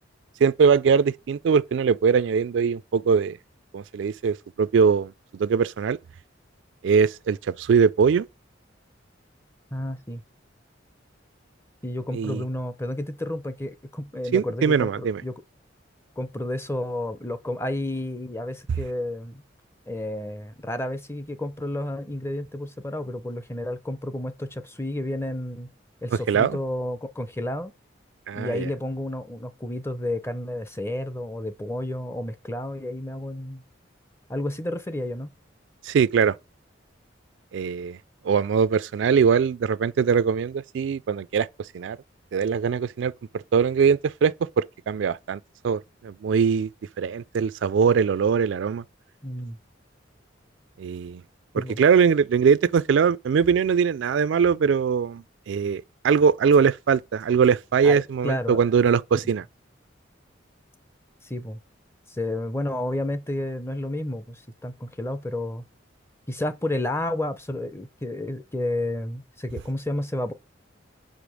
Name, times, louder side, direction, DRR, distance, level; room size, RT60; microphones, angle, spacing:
voice 1, 0.4-3.4 3.7-6.0 6.8-8.2 12.1-12.4 14.3-15.2 26.3-26.6 28.3-28.7 35.8-36.4 37.5-38.0 38.2-42.0 42.3-46.7 47.0-48.8 50.8-51.2 51.5-59.4, right 6 dB, 70° right, 0.3 m, -22 dB
voice 2, 9.7-10.2 11.8-15.4 16.2-19.4 19.9-25.7 26.0-27.7 28.3-33.6 34.3-35.3 49.2-49.6 51.5-51.8 57.8-58.6 61.2-61.6 62.1-65.6 66.3-70.3, left 1 dB, 15° left, 0.6 m, -31 dB
5.6 x 5.1 x 6.2 m
head